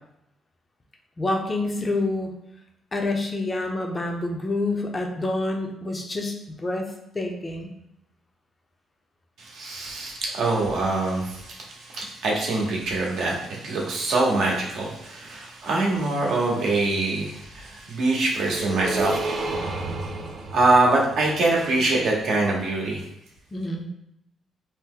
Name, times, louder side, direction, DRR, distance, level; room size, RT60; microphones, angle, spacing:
voice 1, 1.2-2.3 2.9-7.7 23.5-23.9, left 2 dB, 25° left, 2 dB, 0.5 m, -27 dB
voice 2, 9.4-19.7 20.5-23.0, right 2 dB, 75° right, -2 dB, 0.8 m, -24 dB
sound 1, 18.3-22.3, right 2 dB, 50° right, 0.4 m, -32 dB
2.8 x 2.1 x 3.6 m, 0.80 s
cardioid pair, 90°, 0 cm